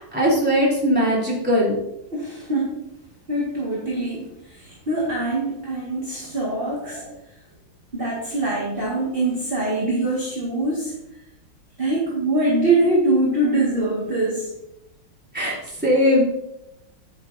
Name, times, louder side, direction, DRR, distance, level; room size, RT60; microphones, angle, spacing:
voice 1, 0.0-1.7 6.8-7.1 15.3-16.2, equal, 5° right, -6 dB, 3.1 m, -20 dB
voice 2, 2.1-2.8 3.3-7.0 7.9-10.9 11.8-14.5, right 2 dB, 25° right, -5 dB, 2.0 m, -23 dB
9.6 x 8.9 x 2.7 m, 0.85 s
omnidirectional pair, 2.2 m